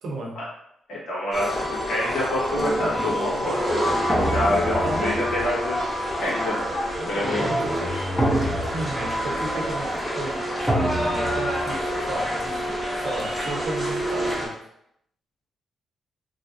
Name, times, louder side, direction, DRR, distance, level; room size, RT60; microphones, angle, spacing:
voice 1, 0.0-0.4 4.8-5.2 7.0-7.9 8.2-10.4 11.1-14.5, right 2 dB, 75° right, 0 dB, 0.6 m, -34 dB
voice 2, 0.9-6.7 7.1-7.5 8.3-8.4, left 1 dB, 85° left, -6 dB, 1.3 m, -27 dB
sound 1, 1.3-14.5, equal, 5° left, 0.7 m, -26 dB
3.0 x 2.4 x 2.6 m, 0.75 s
cardioid pair, 135°, 0 cm